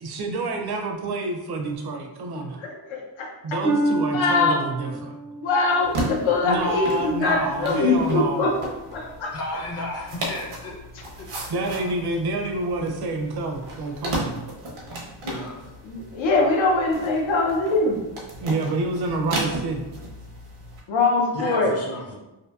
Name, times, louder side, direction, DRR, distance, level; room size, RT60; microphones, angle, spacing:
voice 1, 0.0-2.6 3.4-5.2 6.4-8.5 11.3-14.5 18.4-19.9, right 2 dB, 55° right, 3 dB, 0.5 m, -28 dB
voice 2, 2.6-3.6 4.1-4.6 5.4-8.5 8.9-9.3 15.8-18.0 20.9-21.7, left 3 dB, 75° left, 0 dB, 0.7 m, -22 dB
Harp, 3.6-7.4 7.9-8.3 9.0-9.1, right 2 dB, 50° left, 1.0 m, -29 dB
sound 1, 5.8-20.8, right 1 dB, 90° right, 0.8 m, -35 dB
voice 3, 9.3-10.8 11.2-11.3 11.6-11.9 15.2-15.7 21.3-22.0, left 2 dB, 30° left, -2 dB, 0.6 m, -33 dB
2.7 x 2.5 x 2.3 m, 1.0 s
wide cardioid pair, 135°, 48 cm